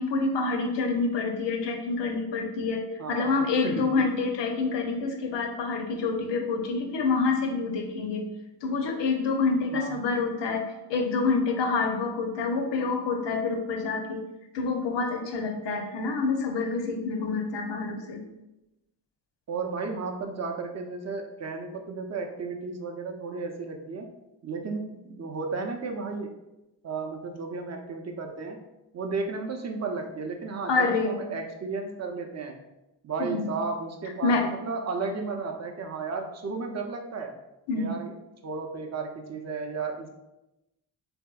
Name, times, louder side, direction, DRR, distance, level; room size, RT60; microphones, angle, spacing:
voice 1, 0.0-8.3 8.6-14.2 14.5-18.2 30.7-31.2 33.2-33.5 34.2-34.5 37.7-38.0, left 4 dB, 60° left, 4 dB, 0.7 m, -27 dB
voice 2, 3.0-4.1 9.7-10.0 19.5-24.1 24.4-26.3 26.8-28.6 28.9-32.6 33.0-37.3 37.7-38.1 38.4-40.1, right 4 dB, 35° right, 3 dB, 0.6 m, -33 dB
3.3 x 2.7 x 2.3 m, 0.95 s
hypercardioid pair, 40°, 50 cm